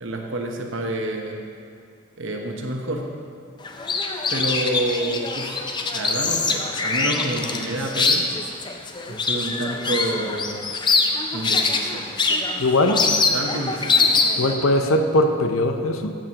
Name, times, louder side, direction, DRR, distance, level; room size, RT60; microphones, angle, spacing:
voice 1, 0.0-1.4 2.2-3.0 4.3-5.6 5.9-8.3 9.1-10.6 11.3-12.1 13.1-14.0 14.8-15.0, right 1 dB, 60° right, 2 dB, 1.0 m, -28 dB
sound 1, 3.6-14.5, left 4 dB, 20° left, 0.4 m, -23 dB
voice 2, 12.6-13.0 14.4-16.1, left 1 dB, 70° left, 6 dB, 0.7 m, -20 dB
13.5 x 7.6 x 2.9 m, 2.3 s
head